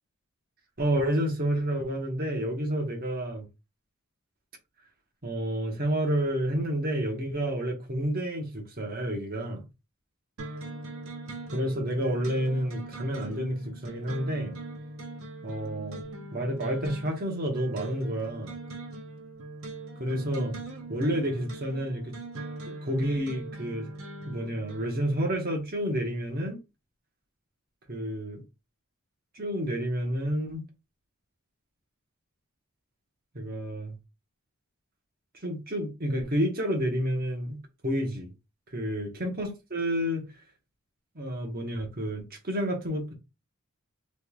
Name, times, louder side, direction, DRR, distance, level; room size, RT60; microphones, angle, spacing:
voice 1, 0.8-3.5 5.2-9.6 11.5-14.5 15.4-16.0 16.3-18.5 20.0-20.5 20.9-22.1 22.6-23.9 24.2-26.6 27.9-28.4 29.3-30.7 33.3-33.9 35.4-38.3 38.7-40.3 41.1-43.1, equal, 45° right, 1.0 m, -30 dB
sound 1, 10.4-25.1, right 2 dB, 65° right, 0.8 m, -41 dB
3.6 x 3.1 x 2.3 m
head